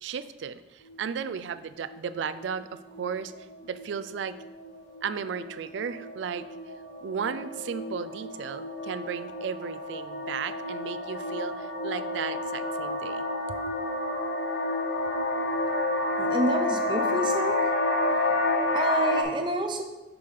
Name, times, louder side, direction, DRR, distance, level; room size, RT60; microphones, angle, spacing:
voice 1, 0.0-3.3 3.6-4.4 5.0-6.4 7.0-13.3, right 7 dB, 90° right, 13 dB, 0.3 m, -35 dB
sound 1, 0.9-1.4 1.9-2.1 2.4-2.6 2.9-19.2, left 2 dB, 85° left, 0.7 m, -30 dB
voice 2, 16.2-17.7 18.7-19.8, right 1 dB, 25° right, 6 dB, 0.5 m, -29 dB
6.0 x 3.6 x 4.8 m, 1.1 s
head